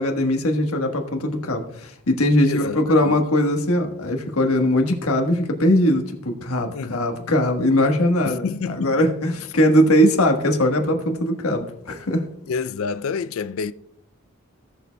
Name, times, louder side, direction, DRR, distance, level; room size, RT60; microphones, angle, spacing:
voice 1, 0.0-12.2, left 1 dB, 85° left, 1.3 m, -20 dB
voice 2, 2.5-3.2 6.7-7.0 8.2-9.1 12.5-13.7, left 5 dB, 70° left, 0.4 m, -28 dB
17.5 x 6.7 x 2.2 m
head